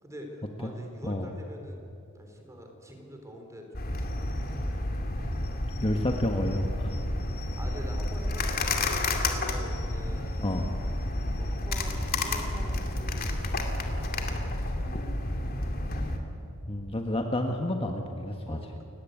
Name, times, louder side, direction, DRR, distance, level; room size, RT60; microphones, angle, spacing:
voice 1, 0.0-1.9 2.1-5.0 7.6-10.6 11.4-14.5 15.3-16.1 18.5-18.8, equal, 15° right, 3 dB, 3.9 m, -46 dB
sound 1, 3.7-16.2, left 2 dB, 45° left, 2.4 m, -30 dB
voice 2, 5.8-7.0 10.4-10.7 16.7-18.8, left 1 dB, 25° left, 3 dB, 1.4 m, -30 dB
29.5 x 16.0 x 9.4 m, 2.6 s
head